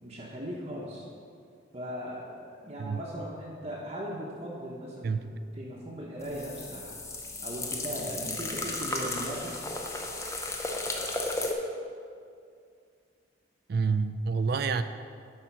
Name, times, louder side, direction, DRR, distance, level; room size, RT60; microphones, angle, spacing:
voice 1, 0.0-1.0 1.7-7.0 7.4-9.7, equal, 30° right, -5 dB, 1.0 m, -38 dB
sound 1, 6.2-11.5, left 2 dB, 15° left, 0.6 m, -34 dB
voice 2, 13.7-14.8, right 5 dB, 50° right, 11 dB, 0.3 m, -28 dB
10.0 x 4.3 x 6.0 m, 2.3 s
head